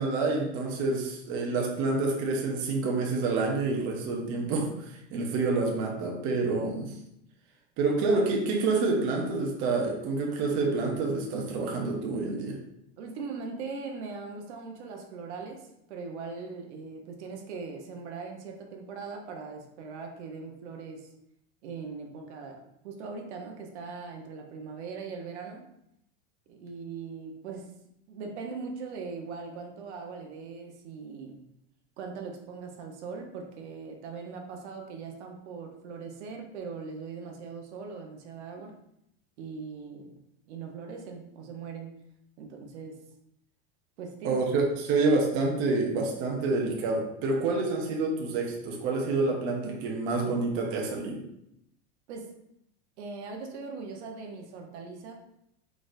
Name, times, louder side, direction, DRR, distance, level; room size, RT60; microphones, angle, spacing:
voice 1, 0.0-6.9 7.8-12.6 44.2-51.2, right 3 dB, 35° right, 0 dB, 0.8 m, -28 dB
voice 2, 13.0-21.1 21.6-25.6 26.5-27.7 28.1-31.4 32.0-38.7 39.4-40.2 40.5-42.0 42.4-43.0 44.0-44.4 52.1-52.3 53.0-55.1, right 4 dB, 80° right, 2 dB, 1.0 m, -40 dB
4.7 x 4.2 x 2.6 m, 0.78 s
supercardioid pair, 160°, 34 cm